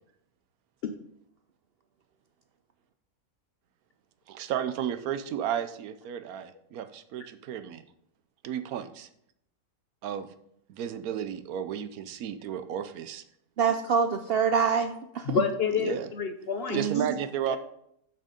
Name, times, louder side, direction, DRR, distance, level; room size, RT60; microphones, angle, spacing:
voice 1, 4.3-7.8 8.4-9.1 10.0-10.3 10.7-13.2 15.8-16.1 16.7-17.6, right 9 dB, 90° right, 11 dB, 1.1 m, -33 dB
voice 2, 13.6-15.4 16.7-17.1, right 6 dB, 70° right, 8 dB, 0.5 m, -26 dB
voice 3, 15.2-16.8 17.5-17.6, left 6 dB, 60° left, 7 dB, 0.6 m, -28 dB
6.8 x 6.1 x 5.0 m, 0.74 s
omnidirectional pair, 1.5 m